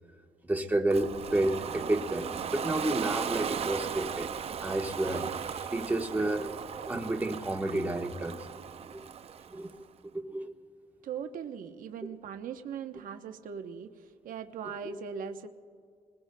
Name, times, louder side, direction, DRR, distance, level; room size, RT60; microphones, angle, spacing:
voice 1, 0.4-4.3 4.6-6.5 6.9-8.5 9.5-9.7 10.1-10.5, right 1 dB, 10° right, 2 dB, 1.1 m, -30 dB
Ocean, 0.9-9.7, right 7 dB, 45° right, 0.5 m, -37 dB
voice 2, 11.0-15.5, right 7 dB, 75° right, 7 dB, 0.9 m, -40 dB
28.0 x 21.0 x 2.2 m, 2.2 s
cardioid pair, 130°, 14 cm